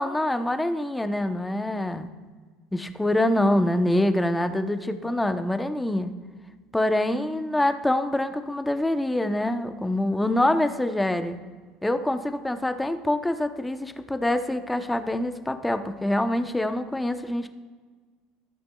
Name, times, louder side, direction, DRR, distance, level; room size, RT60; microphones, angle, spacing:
voice 1, 0.0-2.1 2.7-6.1 6.7-11.4 11.8-17.5, left 1 dB, 10° left, 9 dB, 0.8 m, -25 dB
18.5 x 6.6 x 2.3 m, 1.4 s
hypercardioid pair, 85°, 0 cm